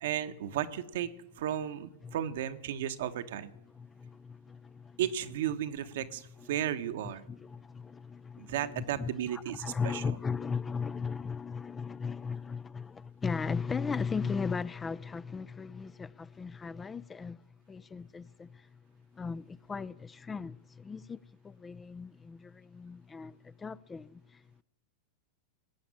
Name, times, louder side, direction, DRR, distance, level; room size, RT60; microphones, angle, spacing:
voice 1, 0.0-1.1 1.4-3.5 5.0-7.2 8.4-10.2, right 10 dB, 65° right, 1.1 m, -34 dB
voice 2, 3.7-5.0 6.4-6.5 7.3-17.4 17.7-18.7 19.1-24.6, left 5 dB, 20° left, 0.4 m, -37 dB
18.5 x 7.1 x 9.8 m
hypercardioid pair, 100°, 0 cm